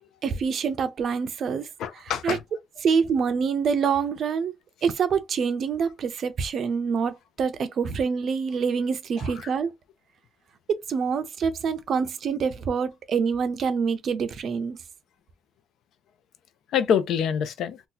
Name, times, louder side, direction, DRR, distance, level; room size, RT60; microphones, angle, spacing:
voice 1, 0.2-1.7 2.2-2.4 2.8-4.5 4.8-9.7 10.7-14.8, right 6 dB, 45° right, 0.5 m, -26 dB
voice 2, 1.8-2.4 9.2-9.5 16.7-17.8, left 8 dB, 65° left, 0.4 m, -26 dB
2.8 x 2.2 x 3.8 m
cardioid pair, 155°, 0 cm